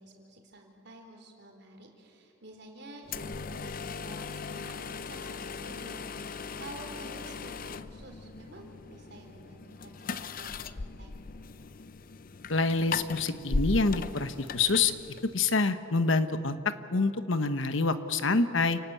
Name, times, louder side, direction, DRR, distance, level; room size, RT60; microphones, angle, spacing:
voice 1, 0.0-11.1, right 1 dB, 55° right, 3 dB, 4.1 m, -50 dB
sound 1, 3.0-15.6, left 4 dB, 40° left, 0.6 m, -38 dB
voice 2, 12.5-14.9 15.3-16.5 16.9-18.8, left 3 dB, 65° left, 10 dB, 1.2 m, -26 dB
28.5 x 18.5 x 8.5 m, 2.8 s
head